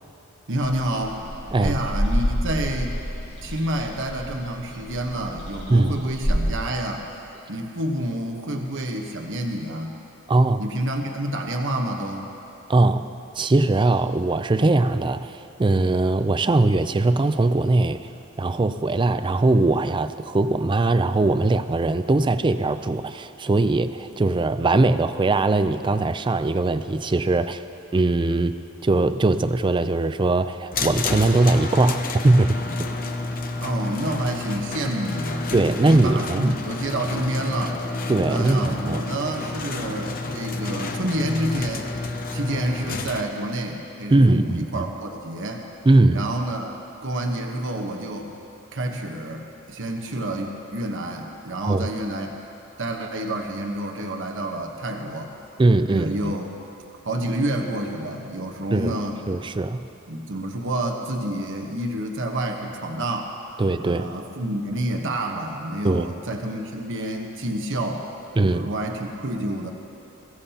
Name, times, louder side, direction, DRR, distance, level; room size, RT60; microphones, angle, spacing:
voice 1, 0.5-1.2 1.6-3.0 3.4-7.1 7.5-10.0 10.6-12.3 33.6-35.5 35.9-37.8 38.2-41.9 42.3-45.7 46.1-48.3 48.7-52.4 52.8-55.3 55.9-56.5 57.0-59.2 60.1-63.3 63.8-68.1 68.5-69.7, right 1 dB, 55° right, 2 dB, 1.1 m, -28 dB
sound 1, 0.6-6.5, equal, 75° left, 4.1 m, -28 dB
voice 2, 10.3-10.7 12.7-13.1 13.4-18.1 18.4-27.6 27.9-28.6 28.8-32.6 35.5-36.6 38.1-39.0 44.1-44.9 45.9-46.2 51.6-51.9 55.6-56.3 58.7-59.0 59.3-59.8 63.6-64.1 65.8-66.1 68.4-68.7, right 2 dB, 20° right, 11 dB, 0.4 m, -20 dB
sound 2, 30.7-43.2, left 3 dB, 40° left, 0.8 m, -30 dB
22.0 x 16.0 x 2.9 m, 2.8 s
head